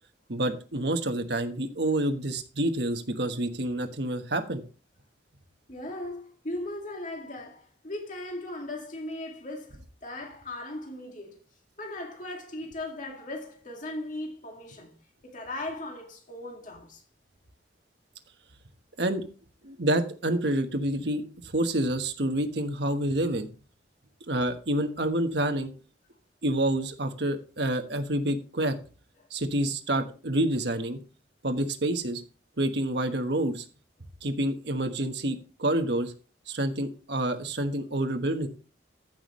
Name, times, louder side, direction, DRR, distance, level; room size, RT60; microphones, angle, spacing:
voice 1, 0.3-4.6 19.0-19.2 19.6-23.5 24.3-25.7 26.4-28.8 29.3-31.0 31.4-32.2 32.6-33.6 34.2-36.1 36.5-38.5, right 1 dB, 70° right, 1.3 m, -28 dB
voice 2, 5.7-11.4 11.8-15.0 15.2-17.0, left 1 dB, 45° left, 2.2 m, -38 dB
14.5 x 6.1 x 3.1 m
head